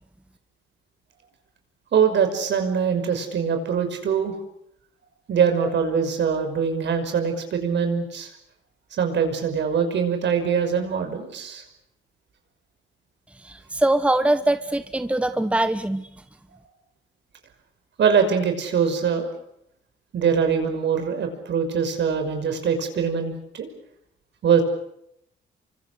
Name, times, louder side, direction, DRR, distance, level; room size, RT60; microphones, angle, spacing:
voice 1, 1.9-4.3 5.3-8.3 9.0-11.6 18.0-19.3 20.1-23.7 24.4-24.6, right 6 dB, 65° right, 6 dB, 5.8 m, -23 dB
voice 2, 13.4-16.1, right 1 dB, 5° right, 10 dB, 1.3 m, -22 dB
29.5 x 24.5 x 6.7 m, 0.75 s
cardioid pair, 90°, 20 cm